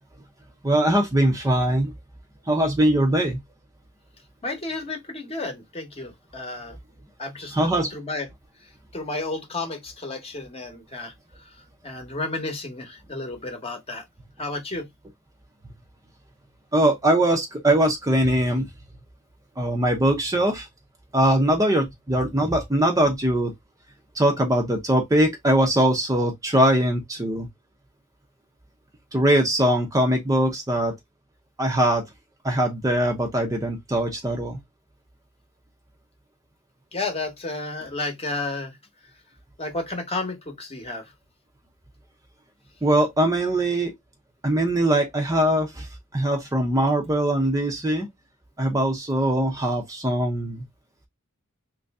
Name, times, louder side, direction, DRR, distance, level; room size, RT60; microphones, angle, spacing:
voice 1, 0.6-1.9 2.5-3.4 7.5-7.9 16.7-18.7 19.6-20.7 21.1-23.5 24.1-27.5 29.1-30.9 31.6-32.0 32.4-34.6 42.8-43.9 44.4-48.1 48.6-50.6, right 1 dB, 15° right, 0.5 m, -21 dB
voice 2, 4.4-6.8 7.2-8.3 8.6-11.6 11.8-14.0 14.4-14.9 36.9-38.8 39.6-41.1, left 2 dB, 30° left, 0.9 m, -32 dB
3.1 x 2.5 x 3.4 m
head